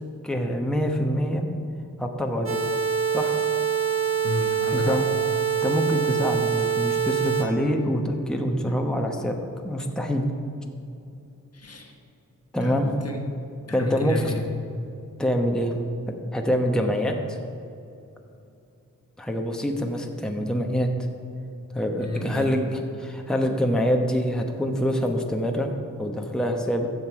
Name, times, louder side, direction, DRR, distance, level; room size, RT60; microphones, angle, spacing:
voice 1, 0.2-1.4 2.0-2.6 3.1-3.4 4.7-5.0 5.6-9.4 9.6-10.3 12.5-12.9 13.7-14.3 15.2-15.7 16.3-17.4 19.2-20.9 21.7-25.7 26.0-26.9, equal, ahead, 2 dB, 1.0 m, -25 dB
sound 1, 2.4-7.4, right 7 dB, 40° right, 1.9 m, -25 dB
voice 2, 4.2-5.1 11.5-11.9 12.6-13.2 13.7-14.5 22.0-22.5, left 2 dB, 45° left, 3 dB, 1.3 m, -31 dB
15.5 x 5.4 x 4.8 m, 2.7 s
cardioid pair, 50°, 34 cm